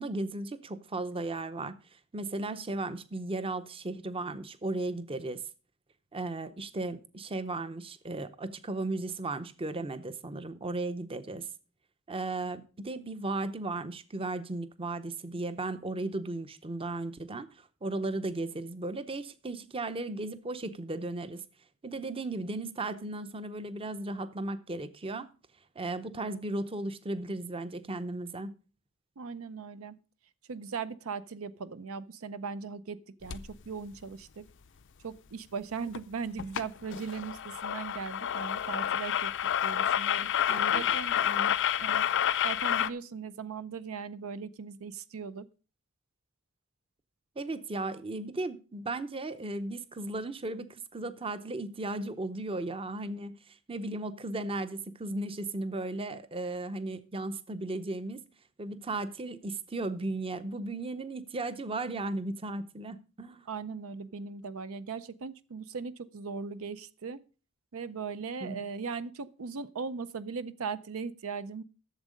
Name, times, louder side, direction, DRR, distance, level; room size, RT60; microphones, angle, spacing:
voice 1, 0.0-1.7 2.1-5.4 6.1-11.5 12.1-21.4 21.8-25.3 25.8-28.5 40.5-41.0 41.2-41.5 47.4-58.2 58.6-63.5 68.2-68.6, right 2 dB, 25° right, 0.7 m, -36 dB
voice 2, 29.2-30.0 30.5-34.5 35.0-39.3 39.6-40.3 40.7-41.2 41.8-42.1 42.4-45.5 63.5-67.2 67.7-71.6, right 5 dB, 70° right, 0.5 m, -38 dB
End scratch, 33.3-33.5 35.9-36.0 36.4-36.6 36.9-42.9, left 10 dB, 60° left, 0.5 m, -29 dB
12.0 x 7.3 x 5.1 m
head